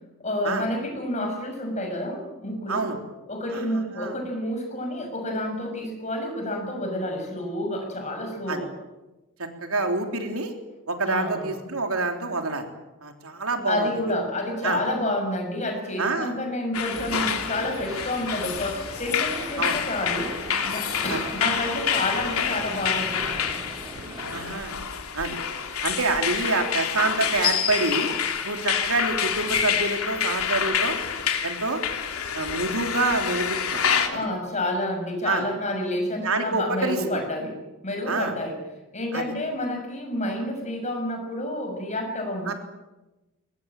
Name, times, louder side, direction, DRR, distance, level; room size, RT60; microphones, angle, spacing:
voice 1, 0.2-2.9 3.3-8.7 11.1-11.5 13.7-20.3 20.6-23.6 34.1-38.6 38.9-42.5, left 1 dB, 30° left, 3 dB, 6.6 m, -29 dB
voice 2, 9.6-10.5 10.9-12.7 13.0-13.9 14.6-14.8 16.0-16.3 19.6-19.8 21.1-21.2 24.3-24.8 25.1-25.4 25.8-28.1 28.4-31.0 31.4-31.8 32.3-33.8 35.2-35.4 36.2-37.2 38.1-38.3 39.1-39.2 42.5-42.6, right 3 dB, 80° right, 4 dB, 3.6 m, -27 dB
sound 1, 16.7-34.1, left 7 dB, 85° left, 3.0 m, -27 dB
sound 2, 16.9-24.6, right 1 dB, 25° right, 4.6 m, -40 dB
23.0 x 20.5 x 9.0 m, 1.1 s
head